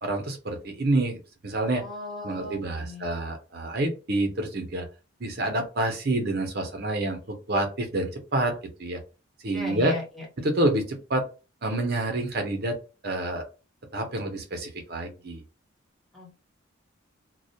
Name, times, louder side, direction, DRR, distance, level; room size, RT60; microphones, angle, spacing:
voice 1, 0.0-1.8 2.2-4.9 5.2-9.0 9.4-9.9 10.4-11.2 11.6-12.8 13.0-13.4 13.9-15.4, right 1 dB, 50° right, 4 dB, 0.7 m, -28 dB
voice 2, 1.8-3.1 9.5-10.2 16.1-16.4, left 2 dB, ahead, -3 dB, 0.7 m, -37 dB
2.3 x 2.1 x 2.7 m, 0.32 s
head